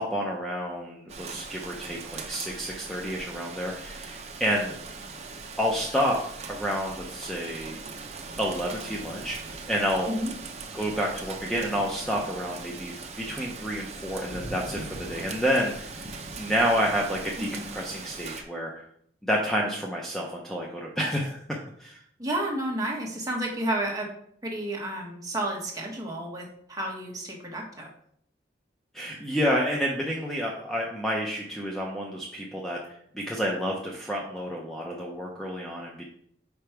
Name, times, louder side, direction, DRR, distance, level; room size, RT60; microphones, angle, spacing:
voice 1, 0.0-4.7 5.6-6.2 6.5-7.8 8.4-10.2 10.7-16.1 16.4-18.9 19.2-21.4 21.8-22.0 28.9-32.8 33.1-36.0, equal, ahead, -2 dB, 0.6 m, -29 dB
Rain, 1.1-18.4, right 3 dB, 40° right, 0.7 m, -40 dB
voice 2, 22.2-24.1 24.4-27.9, right 1 dB, 20° right, -1 dB, 1.2 m, -31 dB
5.1 x 4.6 x 4.5 m, 0.67 s
head